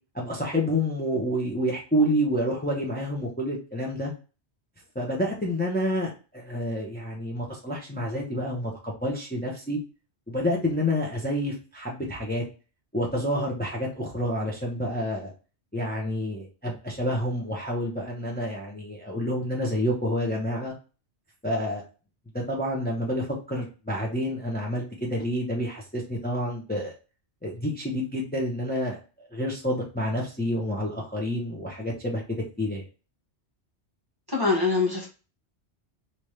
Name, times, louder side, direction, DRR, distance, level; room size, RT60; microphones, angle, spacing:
voice 1, 0.1-4.1 4.9-9.8 10.3-12.4 12.9-15.3 15.7-20.7 21.4-21.8 22.3-26.9 27.4-32.8, equal, 10° left, -2 dB, 0.7 m, -28 dB
voice 2, 34.3-35.1, left 4 dB, 20° right, -2 dB, 0.9 m, -23 dB
3.4 x 2.8 x 3.1 m, 0.34 s
omnidirectional pair, 1.1 m